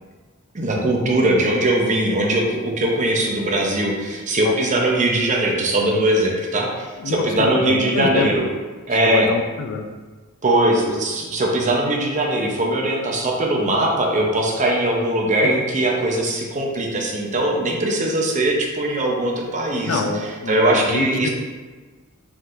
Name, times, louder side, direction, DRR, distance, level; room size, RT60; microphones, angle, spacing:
voice 1, 0.5-8.5 8.9-9.3 10.4-20.0 20.5-21.3, right 1 dB, 35° right, -1 dB, 0.7 m, -20 dB
voice 2, 7.0-8.3 9.0-9.9 15.4-15.5 19.9-21.3, left 4 dB, 85° left, 5 dB, 0.5 m, -25 dB
4.6 x 3.9 x 2.5 m, 1.3 s
head